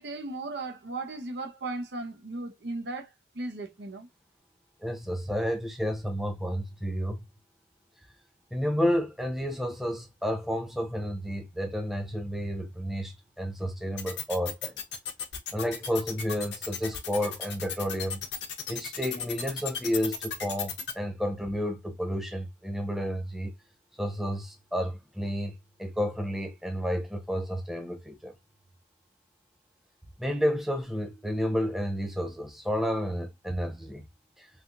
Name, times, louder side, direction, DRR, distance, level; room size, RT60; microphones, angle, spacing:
voice 1, 0.0-3.1 3.3-4.1, right 2 dB, 65° right, 0.8 m, -36 dB
voice 2, 4.8-7.2 8.5-14.8 15.5-18.2 18.7-23.5 24.0-25.5 25.8-28.3 30.2-34.0 34.4-34.5, equal, ahead, 0.4 m, -31 dB
sound 1, 14.0-20.9, left 7 dB, 70° left, 0.9 m, -35 dB
3.4 x 2.3 x 2.5 m
head